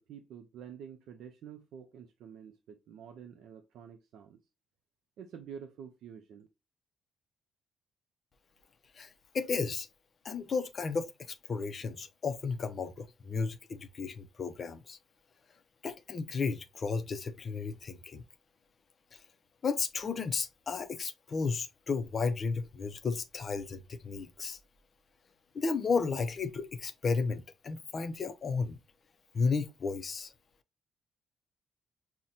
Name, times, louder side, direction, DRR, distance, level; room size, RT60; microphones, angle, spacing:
voice 1, 0.0-4.4 5.2-6.5, right 8 dB, 70° right, 0.4 m, -48 dB
voice 2, 9.3-9.9 10.2-15.0 15.8-18.2 19.6-24.6 25.5-28.8 29.3-30.3, left 4 dB, 30° left, 0.4 m, -33 dB
5.6 x 2.1 x 2.5 m
cardioid pair, 175°, 0 cm